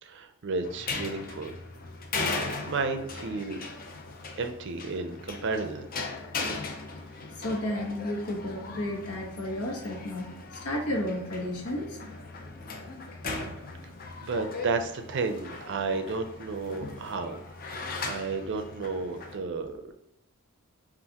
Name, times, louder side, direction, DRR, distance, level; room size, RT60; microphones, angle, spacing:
voice 1, 0.0-1.5 2.7-3.6 4.4-5.9 14.2-17.4 17.7-19.9, right 4 dB, 55° right, 7 dB, 0.5 m, -32 dB
sound 1, 0.6-19.4, left 3 dB, 40° left, 0.5 m, -38 dB
voice 2, 7.4-12.0, left 1 dB, 85° left, -1 dB, 1.2 m, -32 dB
5.6 x 2.5 x 2.9 m, 0.81 s
head